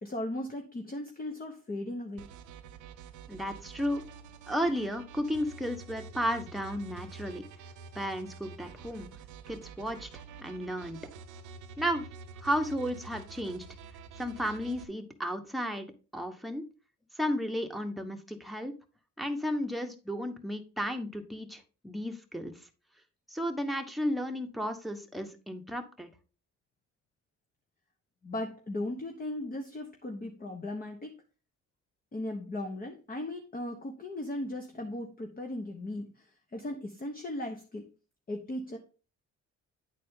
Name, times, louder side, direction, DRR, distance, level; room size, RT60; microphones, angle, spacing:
voice 1, 0.0-2.2 28.2-31.2 32.1-36.1 36.5-37.9 38.3-38.8, left 1 dB, 30° left, 3 dB, 1.1 m, -37 dB
sound 1, 2.2-14.8, right 5 dB, 90° right, 0.9 m, -48 dB
voice 2, 3.3-4.0 4.5-7.4 7.9-9.1 9.5-11.1 11.8-12.0 12.4-13.6 14.2-16.6 17.2-18.7 19.2-22.5 23.3-26.1, equal, ahead, 4 dB, 1.2 m, -33 dB
10.0 x 4.2 x 3.7 m, 0.34 s
cardioid pair, 90°, 30 cm